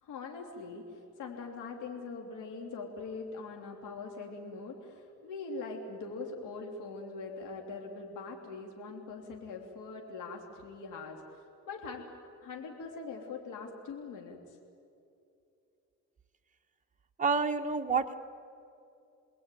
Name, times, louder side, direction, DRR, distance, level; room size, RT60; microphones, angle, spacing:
voice 1, 0.0-12.0 12.4-14.6, left 4 dB, 90° left, 1 dB, 3.3 m, -42 dB
voice 2, 17.2-18.2, right 5 dB, 25° right, 4 dB, 1.4 m, -28 dB
29.5 x 21.0 x 9.3 m, 2.6 s
cardioid pair, 90°, 30 cm